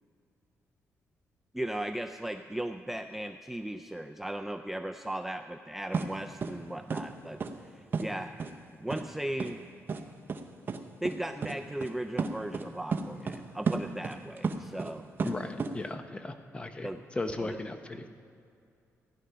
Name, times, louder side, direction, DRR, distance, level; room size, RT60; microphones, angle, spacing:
voice 1, 1.5-8.3 8.8-9.6 11.0-15.1 16.8-17.0 17.4-17.6, right 1 dB, 5° right, 6 dB, 0.4 m, -37 dB
sound 1, 5.9-6.1 6.4-6.5 6.9-7.0 7.4-7.5 7.9-8.1 8.4-8.5 8.9-9.0 9.4-9.5 9.9-10.0 10.3-10.4 10.7-10.8 11.0-11.2 11.4-11.5 11.8-11.9 12.2-12.6 12.9-13.4 13.7-14.9 15.2-15.7, right 5 dB, 40° right, 0.8 m, -31 dB
voice 2, 15.2-18.1, left 2 dB, 20° left, 7 dB, 0.9 m, -37 dB
15.5 x 10.5 x 5.7 m, 2.4 s
cardioid pair, 130°, 5 cm